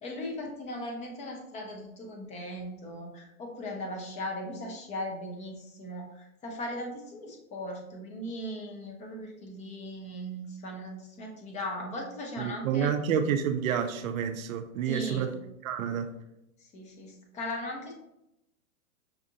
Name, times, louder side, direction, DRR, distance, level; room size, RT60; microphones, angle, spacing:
voice 1, 0.0-12.9 14.8-15.3 16.6-17.9, left 1 dB, 15° left, 0.5 m, -38 dB
voice 2, 12.4-15.3 15.6-16.1, right 8 dB, 65° right, 0.6 m, -29 dB
5.7 x 2.5 x 2.7 m
hypercardioid pair, 125°, 43 cm